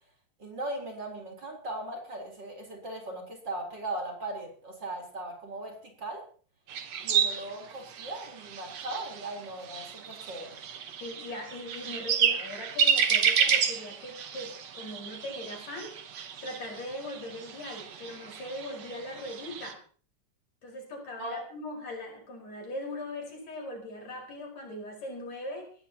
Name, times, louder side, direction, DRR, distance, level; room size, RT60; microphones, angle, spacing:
voice 1, 0.4-6.2 7.0-10.6 21.2-21.4, right 1 dB, 35° right, 1 dB, 4.9 m, -38 dB
sound 1, 6.7-19.7, right 7 dB, 65° right, 2.5 m, -31 dB
voice 2, 11.0-15.9 16.4-19.8 20.6-25.7, left 1 dB, 65° left, 0 dB, 6.5 m, -40 dB
20.5 x 17.5 x 3.0 m, 0.43 s
omnidirectional pair, 3.3 m